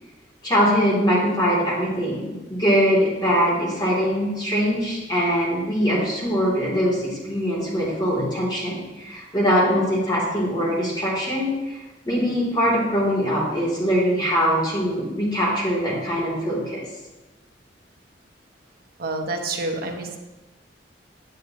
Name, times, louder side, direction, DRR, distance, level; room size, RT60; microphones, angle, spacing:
voice 1, 0.4-16.8, equal, 25° left, -6 dB, 2.8 m, -22 dB
voice 2, 19.0-20.2, right 2 dB, 55° right, 3 dB, 1.0 m, -28 dB
10.0 x 7.2 x 2.9 m, 1.1 s
head